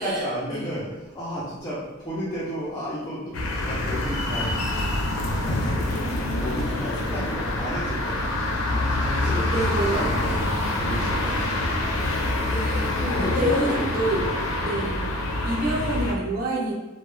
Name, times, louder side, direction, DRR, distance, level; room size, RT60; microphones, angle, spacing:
voice 1, 0.0-4.8 5.1-6.1 6.3-11.5 13.1-13.8 14.1-14.3, equal, 20° left, -8 dB, 0.4 m, -33 dB
sound 1, 3.3-16.1, left 1 dB, 80° left, 0.4 m, -26 dB
voice 2, 9.2-10.1 12.4-14.3 14.6-15.0 15.4-16.7, right 1 dB, 45° right, -4 dB, 0.6 m, -27 dB
2.2 x 2.1 x 3.0 m, 1.1 s
head